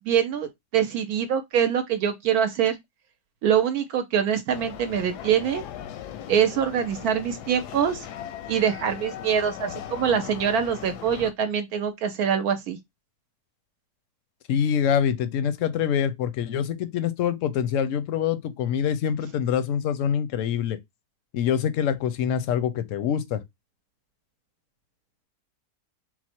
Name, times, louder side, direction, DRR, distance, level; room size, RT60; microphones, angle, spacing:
voice 1, 0.1-2.8 3.4-5.6 6.3-8.1 8.5-12.8, right 8 dB, 75° right, 1.0 m, -24 dB
sound 1, 4.5-11.3, left 10 dB, 90° left, 1.2 m, -39 dB
voice 2, 14.5-20.8 21.3-23.4, left 8 dB, 70° left, 0.8 m, -25 dB
4.2 x 2.0 x 4.3 m
omnidirectional pair, 1.7 m